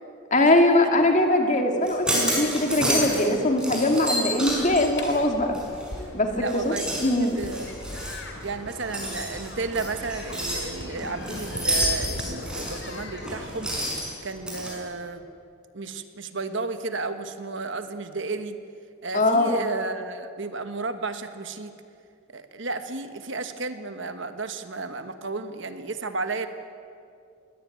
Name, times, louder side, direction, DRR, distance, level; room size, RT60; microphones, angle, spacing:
voice 1, 0.3-5.5 6.1-6.3 6.6-6.7 7.0-7.4 19.1-19.5, left 1 dB, 35° left, 4 dB, 2.4 m, -21 dB
sound 1, 1.8-3.3 3.6-6.0 6.4-14.7, equal, 5° right, 5.7 m, -30 dB
sound 2, 4.5-13.9, left 1 dB, 55° left, 2.6 m, -39 dB
voice 2, 6.3-6.9 7.2-7.8 8.4-13.7 14.2-15.2 15.7-18.6 19.0-21.7 22.3-26.5, right 3 dB, 55° right, 9 dB, 1.3 m, -33 dB
21.0 x 17.5 x 9.3 m, 2.4 s
head